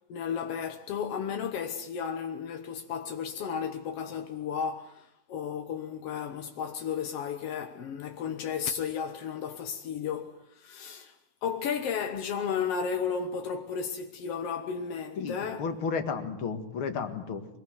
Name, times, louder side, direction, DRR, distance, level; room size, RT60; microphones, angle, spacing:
voice 1, 0.1-15.6, left 7 dB, 75° left, 1.4 m, -33 dB
voice 2, 15.2-17.5, left 5 dB, 45° left, 2.0 m, -33 dB
25.0 x 22.0 x 7.9 m
omnidirectional pair, 4.4 m